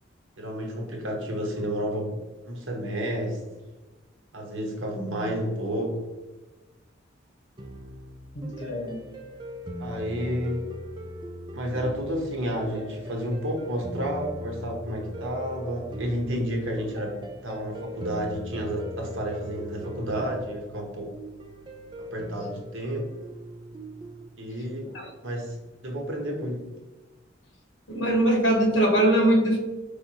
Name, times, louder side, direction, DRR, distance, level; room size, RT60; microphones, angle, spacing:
voice 1, 0.4-2.1 2.4-3.4 4.3-6.0 9.8-10.7 11.5-21.1 22.0-23.1 24.4-24.9 25.2-25.5 25.8-26.7, equal, 90° right, 0 dB, 1.1 m, -31 dB
sound 1, 7.6-24.3, equal, 25° right, 0.4 m, -40 dB
voice 2, 8.3-9.0 24.9-25.1 27.9-29.6, right 1 dB, 75° left, 2 dB, 1.1 m, -22 dB
5.1 x 3.4 x 2.8 m, 1.2 s
head